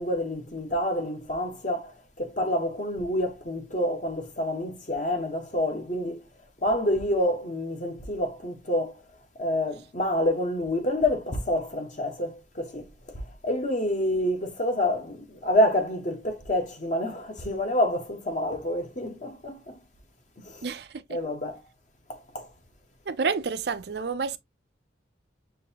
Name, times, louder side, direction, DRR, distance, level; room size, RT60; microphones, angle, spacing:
voice 1, 0.0-1.9 2.2-6.2 6.6-9.0 9.4-19.8 20.4-20.7 21.1-21.6 22.1-22.5, left 1 dB, 45° left, 1.2 m, -28 dB
voice 2, 20.6-21.0 23.1-24.4, right 5 dB, 65° right, 0.5 m, -29 dB
6.3 x 2.8 x 2.8 m
head